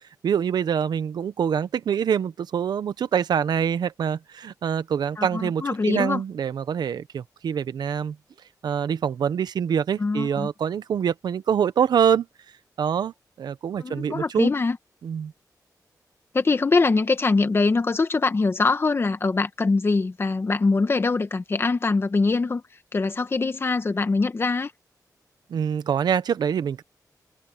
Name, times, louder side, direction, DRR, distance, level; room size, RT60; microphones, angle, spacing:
voice 1, 0.2-8.2 8.6-12.3 12.8-14.5 15.0-15.3 25.5-26.8, right 8 dB, 85° right, 0.9 m, -25 dB
voice 2, 5.2-6.2 10.0-10.5 13.8-14.8 16.3-22.6 22.9-24.7, left 3 dB, 35° left, 1.4 m, -23 dB
wide cardioid pair, 100°, 7 cm